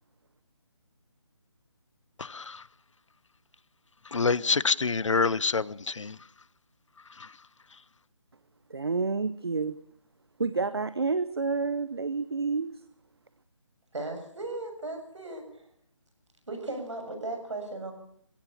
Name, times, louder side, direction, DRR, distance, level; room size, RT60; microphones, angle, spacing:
voice 1, 2.2-2.6 4.1-6.2, left 4 dB, 80° left, 0.8 m, -26 dB
voice 2, 8.7-9.7 10.4-12.7, right 4 dB, 55° right, 0.9 m, -29 dB
voice 3, 13.9-15.4 16.5-17.9, right 2 dB, 70° right, 7.0 m, -36 dB
20.5 x 16.5 x 8.6 m
hypercardioid pair, 180°, 16 cm